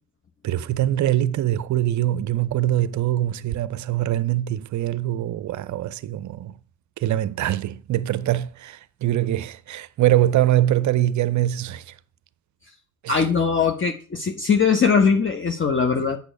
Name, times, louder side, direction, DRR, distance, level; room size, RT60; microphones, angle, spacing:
voice 1, 0.4-6.6 7.0-11.9 13.0-13.3 16.0-16.1, right 13 dB, 40° right, 0.6 m, -23 dB
voice 2, 13.1-16.2, left 5 dB, 25° left, 1.1 m, -20 dB
8.2 x 7.1 x 4.6 m
hypercardioid pair, 50°, 44 cm